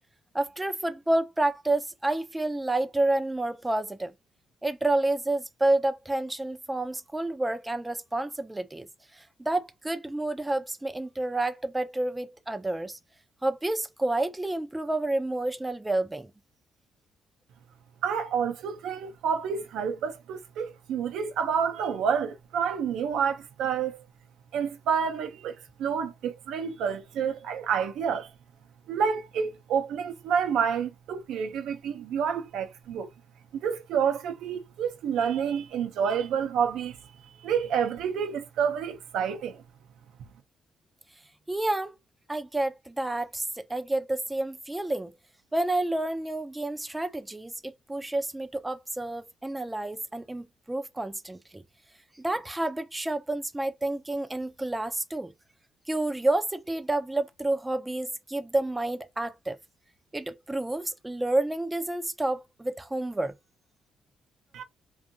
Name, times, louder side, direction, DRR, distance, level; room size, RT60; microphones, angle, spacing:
voice 1, 0.3-4.1 4.6-8.9 9.1-13.0 13.4-16.3 41.5-42.0 42.3-45.1 45.5-51.6 52.2-55.3 55.9-59.6 60.1-63.4, right 2 dB, 10° right, 0.4 m, -29 dB
voice 2, 18.0-24.0 24.5-28.3 28.9-33.1 33.5-37.0 37.4-39.6 64.5-64.6, right 7 dB, 85° right, 0.5 m, -29 dB
2.6 x 2.3 x 2.6 m
cardioid pair, 90°, 0 cm